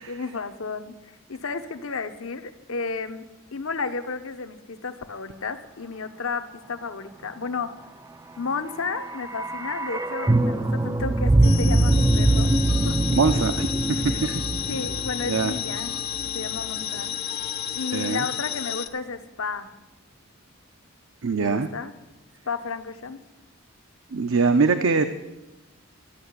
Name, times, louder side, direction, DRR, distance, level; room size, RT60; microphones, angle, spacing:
voice 1, 0.0-3.3 3.5-7.7 8.4-13.0 14.1-14.2 14.7-16.0 16.3-17.3 17.7-19.7 21.4-21.9 22.5-23.2, left 4 dB, 70° left, 9 dB, 0.9 m, -32 dB
sound 1, 8.6-16.7 17.0-17.1, right 2 dB, 15° right, 0.3 m, -23 dB
sound 2, 11.4-18.9, left 11 dB, 45° left, 0.7 m, -32 dB
voice 2, 13.1-14.4 15.3-15.5 17.9-18.2 21.2-21.7 24.1-25.0, right 4 dB, 65° right, 8 dB, 0.6 m, -23 dB
13.0 x 6.8 x 9.5 m, 1.0 s
head